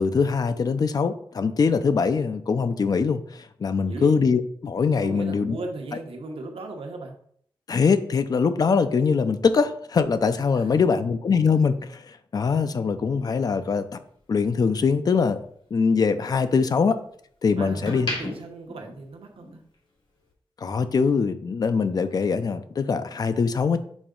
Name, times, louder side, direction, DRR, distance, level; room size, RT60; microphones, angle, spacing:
voice 1, 0.0-5.6 7.7-12.0 12.3-14.0 14.3-15.4 15.7-17.0 17.4-18.1 20.6-23.8, left 5 dB, 45° left, 10 dB, 0.4 m, -22 dB
voice 2, 3.7-4.2 5.0-7.1 10.5-10.7 16.6-16.8 17.6-19.6, right 2 dB, 90° right, 3 dB, 1.0 m, -37 dB
sound 1, 13.0-15.3 15.7-17.2 17.6-19.7 20.0-20.3, left 1 dB, 60° left, 1.8 m, -37 dB
6.1 x 4.6 x 3.8 m, 0.63 s
wide cardioid pair, 175°, 9 cm